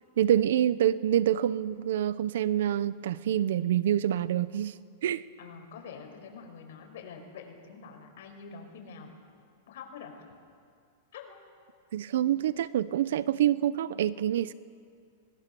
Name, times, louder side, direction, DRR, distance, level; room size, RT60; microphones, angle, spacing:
voice 1, 0.2-4.7 5.0-5.2 11.9-14.5, right 11 dB, 75° right, 17 dB, 0.7 m, -26 dB
voice 2, 5.4-9.2 9.7-10.2 11.1-11.4, left 5 dB, 65° left, 3 dB, 5.4 m, -46 dB
24.5 x 21.5 x 7.0 m, 2.2 s
supercardioid pair, 150°, 0 cm